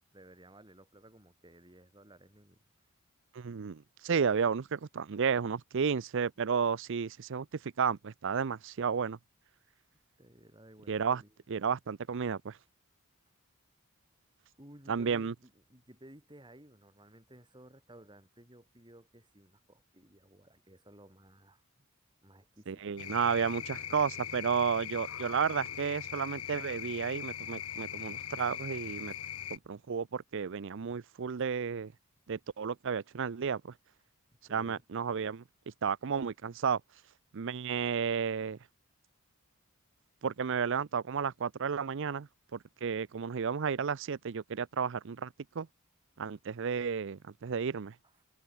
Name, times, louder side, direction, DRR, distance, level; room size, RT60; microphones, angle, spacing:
voice 1, 0.1-2.6 10.2-11.4 14.6-21.8 22.2-23.1 34.5-34.8 48.0-48.1, right 1 dB, 20° right, 7.6 m, -56 dB
voice 2, 3.3-9.2 10.9-11.2 11.5-12.6 14.9-15.3 22.7-29.1 29.5-31.9 32.3-33.7 34.5-35.4 35.8-36.8 37.3-38.6 40.2-45.3 45.6-45.7 46.2-47.9, right 6 dB, 60° right, 0.5 m, -32 dB
sound 1, 23.0-29.6, left 10 dB, 85° left, 1.7 m, -41 dB
head